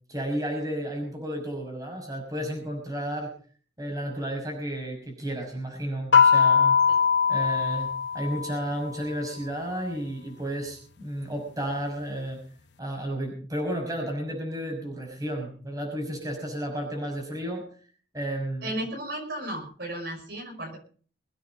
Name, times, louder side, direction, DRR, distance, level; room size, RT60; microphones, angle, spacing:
voice 1, 0.1-3.3 3.8-6.8 7.3-7.9 8.1-12.4 12.8-17.6 18.1-18.7, right 1 dB, 20° right, 1 dB, 6.0 m, -32 dB
sound 1, 6.1-8.8, left 6 dB, 75° left, 0.9 m, -21 dB
voice 2, 18.6-20.8, right 1 dB, 60° right, 1 dB, 5.8 m, -34 dB
22.5 x 9.4 x 5.2 m, 0.43 s
head